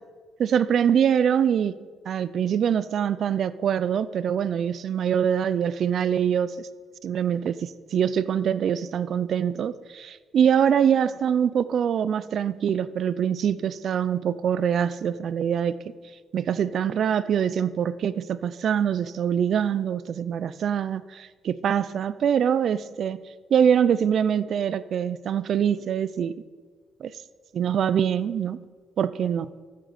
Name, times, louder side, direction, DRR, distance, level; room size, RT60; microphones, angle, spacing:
voice 1, 0.4-1.8 2.1-6.7 7.0-15.8 16.3-23.2 23.5-26.4 27.0-27.1 27.5-28.6 29.0-29.5, right 8 dB, 65° right, 16 dB, 0.6 m, -24 dB
13.5 x 9.0 x 6.7 m, 1.5 s
cardioid pair, 90°, 0 cm